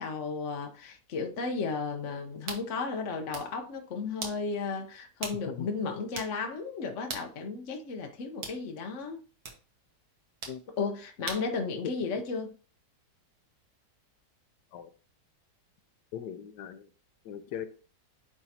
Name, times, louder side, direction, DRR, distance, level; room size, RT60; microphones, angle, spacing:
voice 1, 0.0-9.2 10.7-12.5, left 4 dB, 55° left, 0.9 m, -34 dB
sound 1, 2.5-2.7 3.1-3.6 4.2-4.4 5.2-5.4 5.7-5.8 6.2-6.4 7.1-7.3 8.4-8.6 9.4-9.6 10.4-10.6 11.3-11.5, right 4 dB, 60° right, 1.8 m, -39 dB
voice 2, 16.1-16.9 17.3-17.7, left 8 dB, 75° left, 1.3 m, -39 dB
9.7 x 3.6 x 2.8 m
omnidirectional pair, 1.9 m